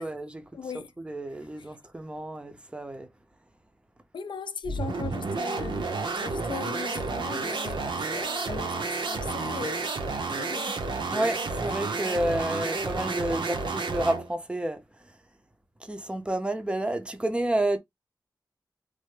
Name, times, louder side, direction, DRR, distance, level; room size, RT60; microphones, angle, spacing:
voice 1, 0.0-0.5 1.0-3.1 11.1-15.2 15.8-17.8, right 1 dB, 15° right, 0.5 m, -30 dB
voice 2, 0.5-0.9 4.1-5.9 6.2-9.9 10.4-10.8, left 5 dB, 70° left, 0.4 m, -38 dB
sound 1, 4.6-14.3, right 3 dB, 75° right, 0.7 m, -31 dB
3.2 x 2.1 x 3.2 m
wide cardioid pair, 115°, 8 cm